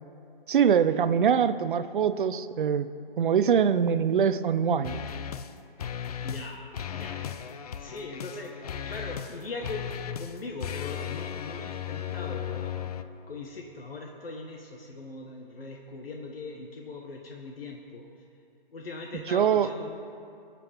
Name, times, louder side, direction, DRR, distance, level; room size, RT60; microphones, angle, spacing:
voice 1, 0.5-2.9 3.2-5.0 19.3-19.7, right 7 dB, 60° right, 13 dB, 0.6 m, -23 dB
sound 1, 4.8-5.5 5.8-6.5 6.7-13.0, left 9 dB, 40° left, 0.5 m, -36 dB
voice 2, 6.2-7.2 7.8-8.5 8.9-9.9 10.2-12.7 13.3-18.0 18.7-19.9, left 3 dB, 75° left, 1 dB, 1.3 m, -40 dB
21.5 x 7.6 x 3.5 m, 2.6 s
hypercardioid pair, 145°, 29 cm